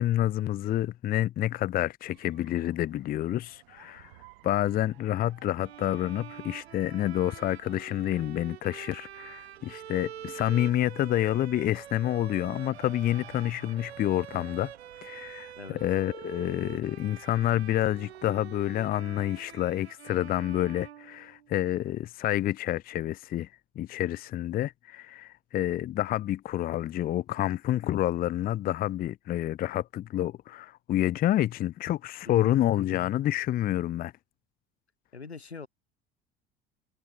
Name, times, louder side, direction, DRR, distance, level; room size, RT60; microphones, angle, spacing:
voice 1, 0.0-4.1 4.4-14.7 15.0-15.5 15.8-23.5 23.8-34.1, left 13 dB, 30° left, 0.6 m, -28 dB
sound 1, 2.0-19.9, right 21 dB, 65° right, 8.0 m, -57 dB
Bowed string instrument, 5.6-21.7, right 10 dB, 80° right, 0.8 m, -46 dB
voice 2, 32.3-32.6 35.1-35.7, left 5 dB, 85° left, 5.4 m, -42 dB
figure-of-eight pair, 70°, 32 cm